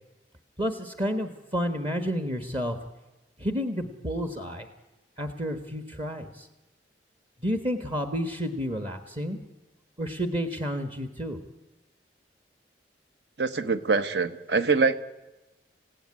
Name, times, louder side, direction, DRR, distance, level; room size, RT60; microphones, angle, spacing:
voice 1, 0.6-2.8 3.4-4.7 5.2-6.5 7.4-9.4 10.0-11.4, equal, 30° right, 7 dB, 1.4 m, -30 dB
voice 2, 13.4-15.0, right 4 dB, 65° right, 11 dB, 1.1 m, -24 dB
28.5 x 16.5 x 9.8 m, 1.1 s
head